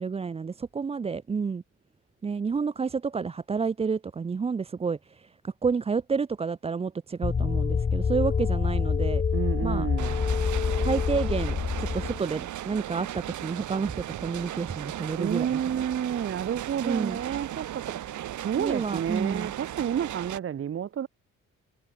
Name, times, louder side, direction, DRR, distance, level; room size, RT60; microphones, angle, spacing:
voice 1, 0.0-1.6 2.2-9.2 9.6-9.9 10.8-15.8 16.8-17.2 18.5-19.5, right 5 dB, 20° right, 0.5 m, -30 dB
sound 1, 7.2-12.2, left 6 dB, 25° left, 0.7 m, -26 dB
voice 2, 9.3-10.2 15.2-21.1, right 9 dB, 45° right, 1.1 m, -30 dB
sound 2, 10.0-20.4, right 12 dB, 75° right, 3.8 m, -37 dB
cardioid pair, 90°, 30 cm